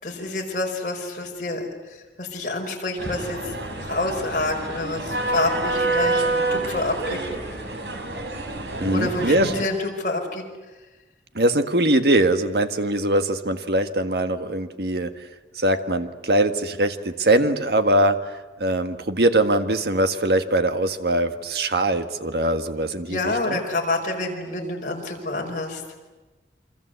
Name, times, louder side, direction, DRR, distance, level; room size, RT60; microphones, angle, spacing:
voice 1, 0.0-7.2 8.9-10.4 23.1-25.8, left 2 dB, 45° left, 0 dB, 5.4 m, -28 dB
sound 1, 3.0-9.6, right 2 dB, 80° right, 4.3 m, -27 dB
voice 2, 8.8-9.5 11.3-15.2 15.5-23.6, right 1 dB, 65° right, 8 dB, 1.7 m, -22 dB
28.5 x 25.0 x 8.1 m, 1.2 s
head